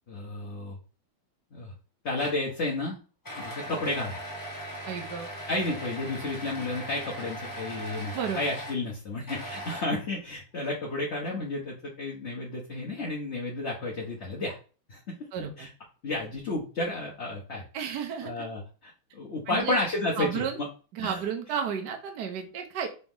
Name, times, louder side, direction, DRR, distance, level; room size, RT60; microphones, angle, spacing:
voice 1, 0.1-0.8 1.5-1.7 2.0-3.0 3.4-4.2 5.5-14.6 14.9-15.2 15.6-15.7 16.0-17.6 18.2-20.7 21.0-21.2, left 2 dB, 45° left, -3 dB, 1.0 m, -32 dB
sound 1, 2.2-2.5 3.2-8.8 9.3-10.1, equal, 20° left, 0.6 m, -39 dB
voice 2, 4.9-5.3 8.1-8.4 15.3-15.7 17.7-18.4 19.5-19.8 20.2-20.6 20.9-22.9, right 7 dB, 65° right, 4 dB, 1.2 m, -32 dB
4.0 x 2.9 x 3.6 m, 0.36 s
omnidirectional pair, 2.1 m